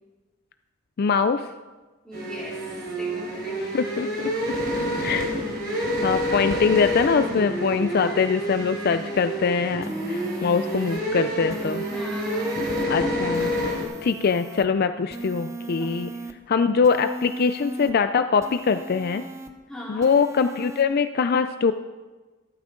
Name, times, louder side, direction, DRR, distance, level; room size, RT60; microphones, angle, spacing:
voice 1, 1.0-1.5 3.6-4.3 5.0-5.3 5.7-11.8 12.9-13.5 14.0-16.1 16.5-19.2 19.9-21.7, left 5 dB, 45° left, 10 dB, 0.4 m, -23 dB
voice 2, 2.0-3.6 11.8-12.6 15.8-16.3 19.7-20.1, equal, 5° left, -6 dB, 3.6 m, -40 dB
sound 1, 2.1-13.8, equal, 50° right, 3.6 m, -28 dB
sound 2, 9.8-11.0 11.5-12.9 13.3-14.7 15.1-16.3 16.8-17.9 18.4-19.5 20.0-20.8, right 1 dB, 15° right, 0.7 m, -36 dB
14.0 x 12.5 x 3.8 m, 1.3 s
head